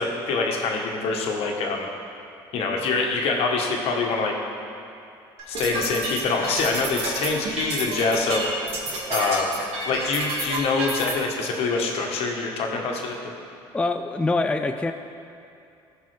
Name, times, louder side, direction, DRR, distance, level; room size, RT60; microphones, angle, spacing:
voice 1, 0.0-1.9 2.5-4.3 5.5-8.5 9.1-9.6 9.9-13.2, left 3 dB, 70° left, 1 dB, 1.2 m, -25 dB
sound 1, 5.4-11.1, right 2 dB, 65° right, 2.0 m, -29 dB
voice 2, 13.7-14.9, left 2 dB, 10° left, 7 dB, 0.3 m, -24 dB
14.5 x 5.3 x 3.4 m, 2.5 s
supercardioid pair, 90°, 10 cm